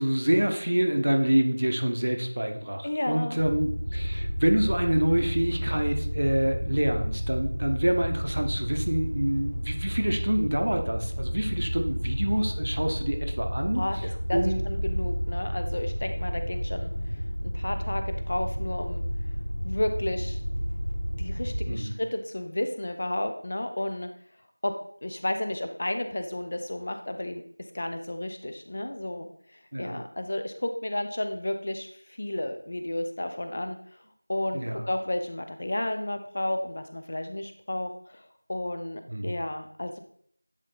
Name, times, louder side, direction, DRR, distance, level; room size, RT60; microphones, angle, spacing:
voice 1, 0.0-13.8 14.3-14.7 21.7-22.0 29.7-29.9 34.5-34.8 39.1-39.3, right 1 dB, 35° right, 5 dB, 0.8 m, -26 dB
voice 2, 2.8-3.4 13.7-16.9 17.4-19.0 19.6-20.4 21.1-24.1 24.6-24.7 25.0-27.4 27.7-33.8 34.3-38.2 38.5-40.0, left 1 dB, 20° left, 6 dB, 0.5 m, -32 dB
sound 1, 3.4-21.7, equal, 50° left, 2.1 m, -31 dB
9.8 x 3.5 x 4.0 m, 0.62 s
figure-of-eight pair, 175°, 0 cm